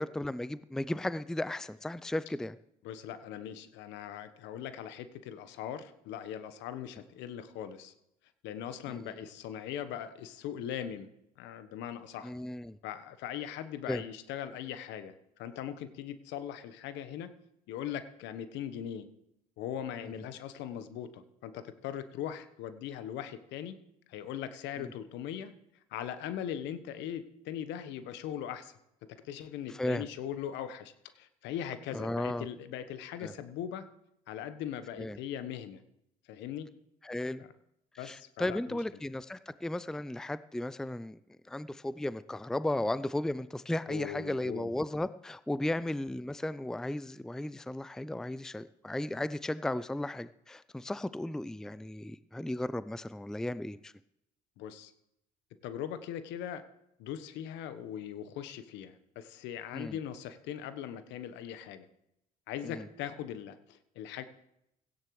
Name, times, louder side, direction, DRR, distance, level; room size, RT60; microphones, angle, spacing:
voice 1, 0.0-2.6 8.9-9.1 12.2-12.8 13.9-14.0 29.7-30.0 31.9-32.5 33.2-33.3 35.0-35.2 37.0-37.4 38.0-41.2 41.5-53.9 59.7-60.0 62.6-62.8, left 1 dB, 5° left, 16 dB, 0.5 m, -35 dB
voice 2, 2.8-7.9 8.4-11.1 11.4-12.3 12.8-17.3 17.7-19.1 19.6-23.8 24.1-25.5 25.9-28.7 29.0-33.9 34.3-35.8 36.3-36.7 37.4-37.5 38.0-38.8 43.9-44.7 45.7-46.0 54.6-54.9 55.6-56.6 57.0-61.9 62.5-64.2, left 10 dB, 70° left, 12 dB, 1.2 m, -40 dB
17.0 x 14.5 x 3.2 m, 0.81 s
hypercardioid pair, 60°, 19 cm